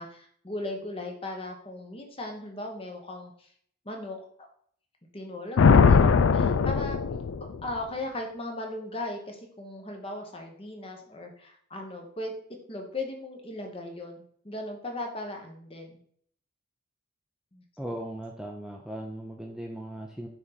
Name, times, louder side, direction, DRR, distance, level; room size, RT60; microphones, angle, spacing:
voice 1, 0.0-3.5 3.8-4.5 5.1-7.0 7.6-12.3 12.7-16.0 17.5-17.6, left 1 dB, 30° left, 3 dB, 1.0 m, -37 dB
Thunder, 5.6-7.8, left 5 dB, 80° left, 0.4 m, -20 dB
voice 2, 17.8-20.3, right 1 dB, 5° right, 1 dB, 0.5 m, -38 dB
6.1 x 4.3 x 4.0 m, 0.62 s
head